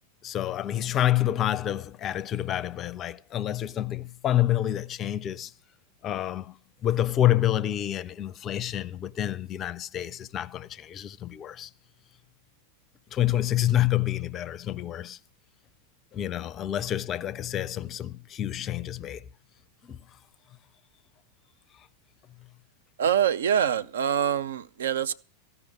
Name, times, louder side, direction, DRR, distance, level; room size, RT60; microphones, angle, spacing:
voice 1, 0.2-5.5 6.0-6.6 6.8-11.7 13.1-15.2 16.1-19.2 19.9-20.0, left 12 dB, 30° left, 0.5 m, -28 dB
voice 2, 23.0-25.1, right 9 dB, 65° right, 0.5 m, -25 dB
15.0 x 5.6 x 9.4 m
figure-of-eight pair, 90°, 0 cm